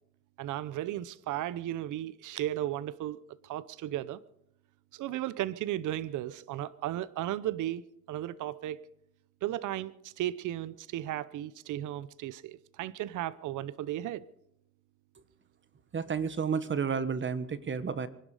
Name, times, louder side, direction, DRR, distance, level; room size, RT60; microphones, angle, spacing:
voice 1, 0.4-4.2 4.9-7.8 8.1-8.8 9.4-14.2, right 13 dB, 80° right, 0.8 m, -35 dB
voice 2, 15.9-18.1, right 6 dB, 40° right, 1.5 m, -31 dB
24.0 x 11.5 x 5.0 m
cardioid pair, 90°, 30 cm